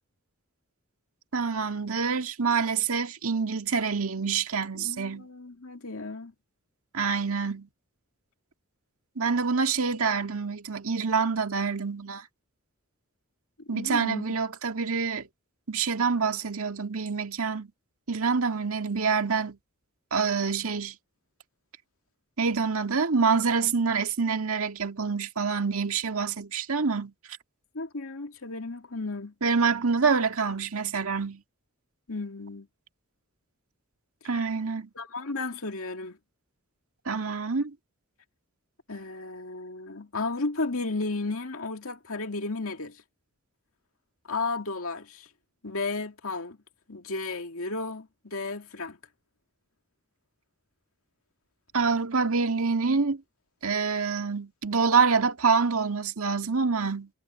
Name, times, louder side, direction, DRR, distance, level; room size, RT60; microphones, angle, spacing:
voice 1, 1.3-5.3 6.9-7.7 9.2-12.3 13.7-15.3 15.7-17.7 18.1-19.6 20.1-21.0 22.4-27.1 29.4-31.4 34.2-34.9 37.1-37.7 51.7-53.2 53.6-57.1, right 5 dB, 75° right, 1.8 m, -26 dB
voice 2, 4.8-6.3 13.7-14.2 27.7-29.3 32.1-32.7 35.0-36.2 38.9-43.0 44.3-45.3 45.6-46.6 46.9-49.0, left 3 dB, 75° left, 2.3 m, -33 dB
head